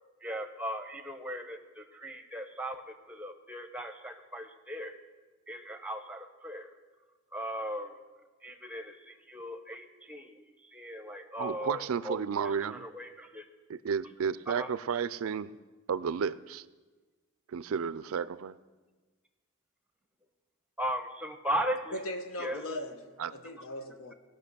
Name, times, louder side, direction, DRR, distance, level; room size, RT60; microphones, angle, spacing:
voice 1, 0.2-4.9 5.5-6.7 7.3-8.0 8.4-10.4 10.7-13.4 14.5-14.7 20.8-22.0 22.4-22.6 23.6-23.7, equal, 5° right, 0.8 m, -38 dB
voice 2, 11.4-12.8 13.7-15.5 15.9-16.6 17.5-18.5 23.2-23.3, right 6 dB, 65° right, 0.4 m, -32 dB
voice 3, 21.9-24.1, left 1 dB, 70° left, 1.1 m, -39 dB
17.5 x 5.9 x 6.8 m
head